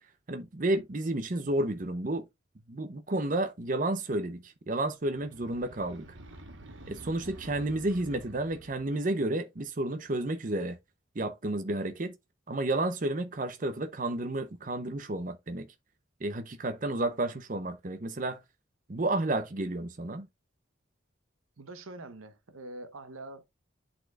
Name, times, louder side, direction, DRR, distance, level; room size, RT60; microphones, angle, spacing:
voice 1, 0.3-2.3 2.7-6.1 6.9-10.8 11.2-12.1 12.5-15.7 16.2-18.4 18.9-20.3, right 2 dB, 40° right, 0.7 m, -31 dB
sound 1, 5.1-9.0, right 1 dB, 70° right, 1.2 m, -49 dB
voice 2, 21.6-23.5, right 2 dB, 90° right, 0.9 m, -44 dB
10.5 x 4.3 x 2.3 m
head